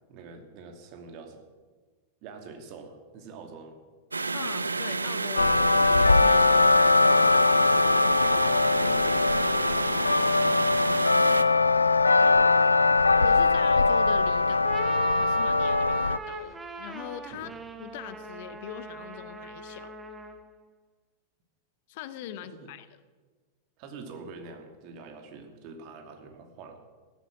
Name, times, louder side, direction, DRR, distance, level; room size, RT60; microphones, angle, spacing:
voice 1, 0.1-1.4 2.2-3.8 8.3-11.4 12.2-12.8 17.3-17.5 22.4-22.7 23.8-26.8, right 4 dB, 45° right, 5 dB, 2.7 m, -45 dB
sound 1, 4.1-11.4, right 3 dB, 80° right, 0.5 m, -30 dB
voice 2, 4.3-7.2 13.2-14.8 15.1-17.5 17.8-19.9 21.9-22.9, left 11 dB, 50° left, 13 dB, 0.9 m, -41 dB
sound 2, 5.4-16.2, left 3 dB, 80° left, 0.4 m, -21 dB
sound 3, 14.5-20.5, right 2 dB, 15° right, 1.6 m, -41 dB
16.0 x 13.5 x 6.5 m, 1.4 s
figure-of-eight pair, 90°, 0 cm